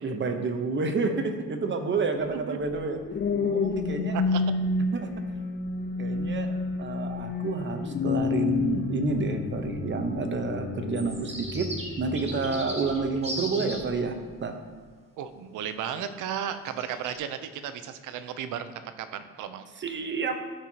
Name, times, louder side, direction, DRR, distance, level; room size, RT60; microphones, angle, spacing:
voice 1, 0.0-3.0 3.3-4.2 4.9-5.1 6.0-6.5 6.8-14.6 19.8-20.3, right 4 dB, 40° right, 6 dB, 0.9 m, -29 dB
voice 2, 2.2-2.6 4.1-4.4 15.2-19.7, right 9 dB, 80° right, 10 dB, 0.6 m, -35 dB
sound 1, 2.7-13.2 13.8-14.1, left 4 dB, 35° left, 0.6 m, -30 dB
sound 2, 10.9-13.8 16.7-17.2, right 1 dB, 20° right, 1.6 m, -38 dB
12.5 x 4.6 x 2.8 m, 1.5 s
cardioid pair, 90°, 30 cm